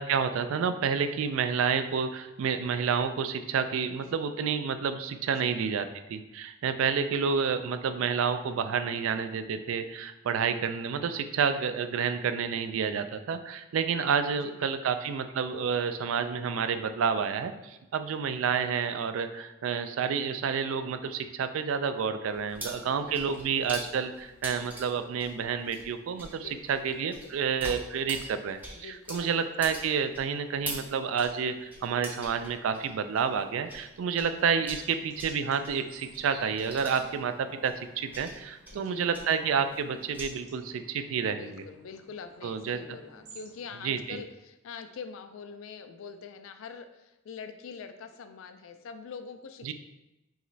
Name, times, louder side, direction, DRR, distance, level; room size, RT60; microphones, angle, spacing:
voice 1, 0.0-41.6 42.4-42.8 43.8-44.2 49.6-49.7, right 6 dB, 80° right, 10 dB, 0.3 m, -29 dB
voice 2, 5.4-5.7 14.3-15.0 22.6-23.6 26.3-26.8 27.2-27.4 28.7-29.3 34.0-34.3 38.7-39.2 41.3-49.7, left 5 dB, 75° left, 9 dB, 0.3 m, -45 dB
sound 1, 22.3-33.9 34.1-40.3, right 1 dB, 10° right, 0.5 m, -44 dB
sound 2, 34.4-44.0, right 2 dB, 50° right, 0.8 m, -53 dB
4.8 x 3.0 x 2.7 m, 0.96 s
head